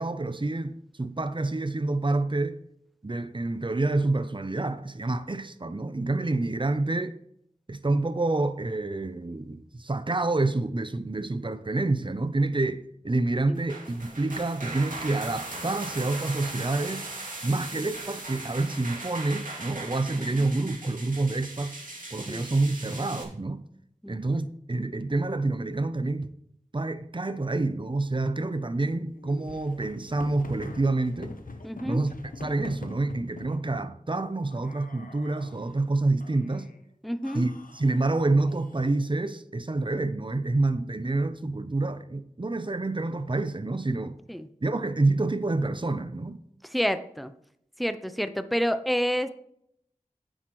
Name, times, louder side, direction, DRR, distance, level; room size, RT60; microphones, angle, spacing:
voice 1, 0.0-2.6 3.0-7.2 7.7-17.1 17.4-21.8 22.1-23.7 24.1-26.3 26.7-31.4 31.8-36.7 37.3-44.2 44.6-46.4, right 2 dB, 35° right, 0.7 m, -28 dB
sound 1, 13.5-23.2, right 2 dB, 80° right, 2.4 m, -39 dB
sound 2, 29.2-33.6 34.4-35.7 36.2-36.8 37.2-39.1, left 3 dB, 85° left, 1.0 m, -45 dB
voice 2, 31.6-32.0 37.0-37.4 44.3-44.5 46.7-47.3 47.8-49.3, equal, ahead, 0.7 m, -29 dB
10.0 x 7.9 x 3.2 m
wide cardioid pair, 40°, 14 cm